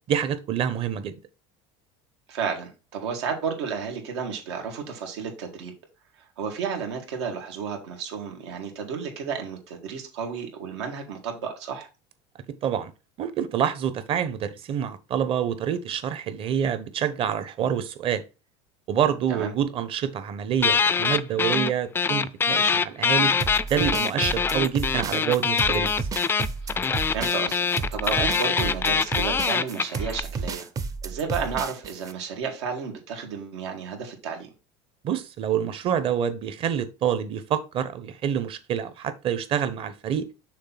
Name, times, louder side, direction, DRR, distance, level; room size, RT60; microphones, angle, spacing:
voice 1, 0.1-1.2 12.6-12.9 13.2-18.2 18.9-23.3 23.6-26.1 35.0-40.3, right 9 dB, 40° right, 1.0 m, -27 dB
voice 2, 2.3-5.7 6.2-11.9 19.3-19.5 26.6-30.7 31.0-34.5, right 6 dB, 90° right, 2.2 m, -32 dB
sound 1, 20.6-21.7 22.0-30.2, left 5 dB, 15° left, 0.3 m, -23 dB
sound 2, 23.4-32.1, right 4 dB, 25° right, 0.6 m, -32 dB
6.5 x 3.3 x 5.8 m
supercardioid pair, 120°, 14 cm